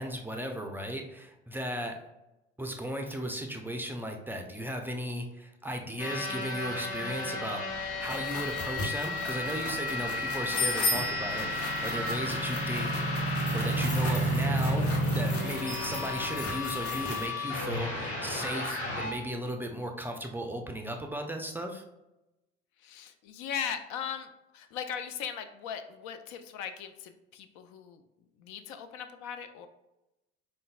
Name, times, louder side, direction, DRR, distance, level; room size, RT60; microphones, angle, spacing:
voice 1, 0.0-2.0 2.6-13.0 13.5-14.9 15.1-21.8, equal, 5° right, 3 dB, 0.4 m, -36 dB
sound 1, 6.0-19.1, equal, 85° left, 1.0 m, -32 dB
sound 2, 7.7-17.3, left 2 dB, 45° left, 1.0 m, -37 dB
voice 2, 22.8-28.0 28.4-29.7, left 8 dB, 65° left, 9 dB, 0.4 m, -39 dB
5.1 x 2.2 x 2.3 m, 0.95 s
hypercardioid pair, 65°, 32 cm